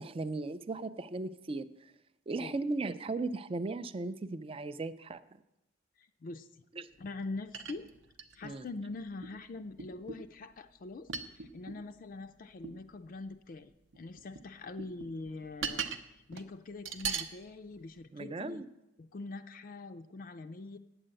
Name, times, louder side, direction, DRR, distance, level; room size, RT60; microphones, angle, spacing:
voice 1, 0.0-1.9 2.3-5.2 6.7-6.9 8.4-8.7 18.1-18.7, right 3 dB, 30° right, 13 dB, 0.4 m, -37 dB
voice 2, 6.0-6.6 7.0-7.9 8.3-15.8 16.1-18.6 19.0-20.8, left 3 dB, 45° left, 8 dB, 0.4 m, -43 dB
sound 1, 7.2-7.3 7.5-8.7 9.2-9.3 9.8-10.3 11.1-11.8 12.6-12.8 13.9-14.5 14.8-16.0 16.3-16.5 16.9-17.3 18.0-18.1, right 6 dB, 75° right, 0.7 m, -39 dB
8.9 x 7.8 x 7.6 m, 0.90 s
head